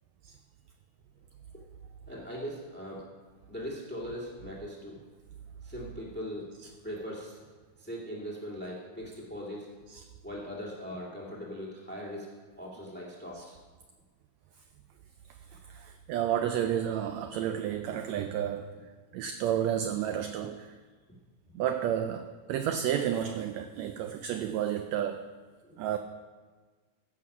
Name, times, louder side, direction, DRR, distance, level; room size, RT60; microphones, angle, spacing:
voice 1, 2.1-3.0 3.5-5.0 5.6-6.5 6.8-7.4 7.8-9.7 10.2-12.3 12.6-13.6 25.6-25.9, equal, 5° left, -4 dB, 1.4 m, -40 dB
voice 2, 15.5-20.8 21.5-25.3 25.8-26.0, right 10 dB, 85° right, 8 dB, 1.6 m, -31 dB
15.0 x 6.2 x 5.5 m, 1.4 s
omnidirectional pair, 3.6 m